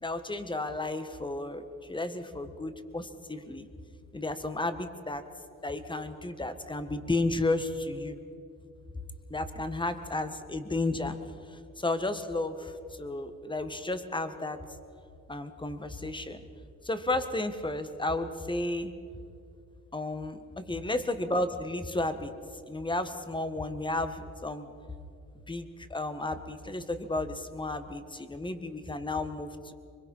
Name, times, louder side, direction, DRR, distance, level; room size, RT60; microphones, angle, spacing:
voice 1, 0.0-3.7 4.1-5.2 5.6-8.2 9.3-11.2 11.8-12.7 13.0-14.6 15.3-16.4 16.8-18.9 19.9-22.3 22.7-24.7 25.5-29.7, left 2 dB, 15° left, 9 dB, 1.6 m, -33 dB
24.0 x 22.0 x 5.7 m, 2.5 s
cardioid pair, 90°, 30 cm